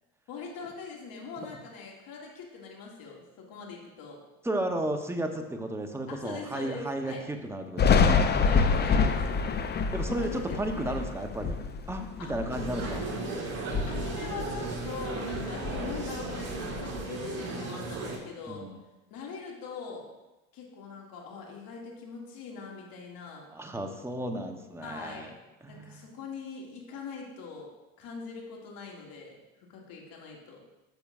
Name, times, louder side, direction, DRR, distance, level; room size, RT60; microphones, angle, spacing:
voice 1, 0.3-4.2 6.1-7.2 8.4-9.3 9.9-11.0 12.2-12.4 13.8-18.7 19.1-20.1 20.5-23.5 24.8-25.4 25.7-27.7 28.0-30.6, left 5 dB, 55° left, -1 dB, 2.4 m, -42 dB
voice 2, 4.4-8.3 9.9-11.6 11.9-13.0 18.5-18.7 23.5-25.3 25.6-26.0, right 1 dB, 5° right, 5 dB, 0.9 m, -33 dB
Thunder, 7.8-13.2 13.6-15.0 15.3-17.0, left 5 dB, 25° left, 0.6 m, -27 dB
sound 1, 12.5-18.2, right 3 dB, 35° right, 2.7 m, -35 dB
11.5 x 6.8 x 2.5 m, 1.0 s
hypercardioid pair, 75°, 42 cm